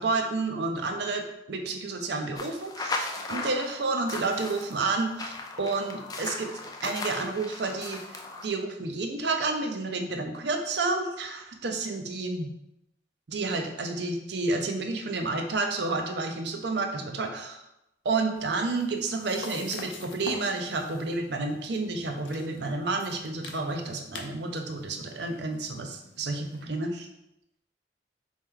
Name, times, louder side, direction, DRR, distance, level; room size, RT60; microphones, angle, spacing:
voice 1, 0.0-6.5 6.8-12.5 13.3-17.6 18.0-27.1, right 3 dB, 65° right, 4 dB, 0.6 m, -30 dB
sound 1, 2.4-8.5, left 3 dB, 20° left, 0.4 m, -37 dB
sound 2, 18.4-26.6, left 4 dB, 85° left, 0.6 m, -46 dB
4.2 x 3.1 x 3.7 m, 0.88 s
head